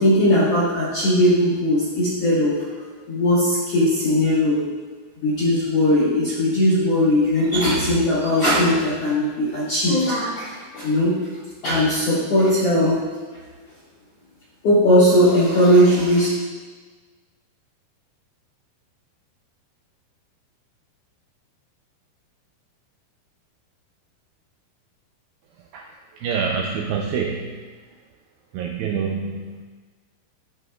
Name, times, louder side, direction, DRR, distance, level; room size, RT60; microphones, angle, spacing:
voice 1, 0.0-2.6 3.1-4.6 5.2-11.2 11.6-13.0 14.6-16.3, left 1 dB, 70° left, -9 dB, 1.4 m, -18 dB
voice 2, 25.7-27.6 28.5-29.6, right 6 dB, 85° right, 1 dB, 2.0 m, -27 dB
14.0 x 4.9 x 2.3 m, 1.4 s
omnidirectional pair, 4.6 m